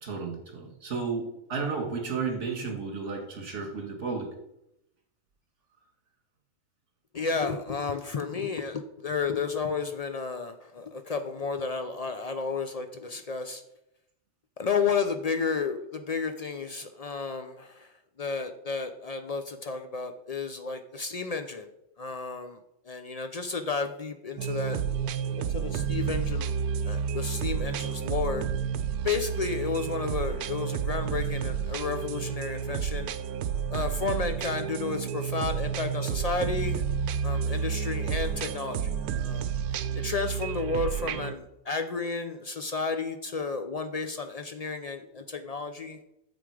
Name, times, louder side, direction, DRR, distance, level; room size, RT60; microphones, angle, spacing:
voice 1, 0.0-4.3, right 4 dB, 55° right, 2 dB, 2.2 m, -33 dB
voice 2, 7.1-13.6 14.6-17.9 18.2-21.7 22.0-22.6 22.9-24.8 25.4-26.5 26.8-28.4 29.0-33.1 33.7-36.8 37.2-46.0, left 4 dB, 75° left, 7 dB, 0.3 m, -32 dB
sound 1, 24.4-41.3, right 7 dB, 80° right, 1.1 m, -30 dB
9.4 x 7.1 x 4.9 m, 0.84 s
omnidirectional pair, 1.5 m